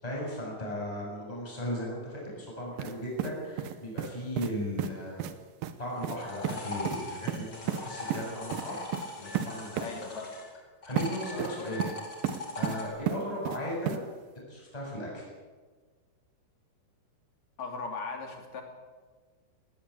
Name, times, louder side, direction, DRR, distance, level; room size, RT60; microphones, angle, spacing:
voice 1, 0.0-5.4 5.8-8.8 9.2-10.0 10.8-11.9 12.6-14.0 14.3-15.3, equal, 5° left, -3 dB, 7.2 m, -36 dB
sound 1, 2.8-2.9 3.2-4.1 4.4-4.5 4.8-4.9 5.2-5.3 5.6-5.7 6.0-6.2 6.4-6.6 6.8-7.0 7.3-7.8 8.1-8.2 8.5-8.6 8.9-9.0 9.3-9.5 9.8-9.9 11.0-11.1 11.4-11.9 12.2-12.8 13.1-13.6 13.9-14.0, right 11 dB, 75° right, 2.1 m, -32 dB
sound 2, 5.9-10.5 10.8-12.9, left 3 dB, 25° left, 3.8 m, -40 dB
voice 2, 9.8-10.3 17.6-18.6, left 4 dB, 40° left, 3 dB, 3.8 m, -38 dB
19.0 x 19.0 x 8.7 m, 1.4 s
omnidirectional pair, 5.5 m